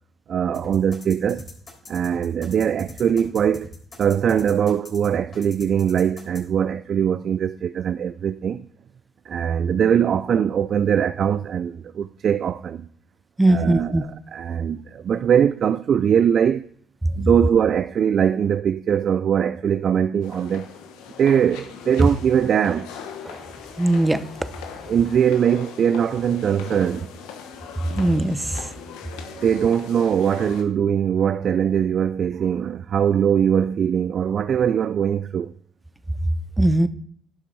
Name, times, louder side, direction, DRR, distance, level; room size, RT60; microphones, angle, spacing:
voice 1, 0.3-1.4 1.9-3.7 4.0-8.7 9.3-12.9 13.5-16.7 17.2-20.7 21.2-22.9 24.9-27.1 29.3-35.5, right 8 dB, 60° right, 0.3 m, -21 dB
sound 1, 0.5-6.4, left 2 dB, 45° left, 3.6 m, -41 dB
voice 2, 13.4-14.0 23.3-23.4 23.8-24.2 27.9-28.4 36.6-36.9, right 1 dB, 15° right, 0.8 m, -19 dB
sound 2, 20.2-30.6, left 7 dB, 85° left, 1.0 m, -40 dB
11.5 x 5.9 x 4.0 m
supercardioid pair, 60°, 0 cm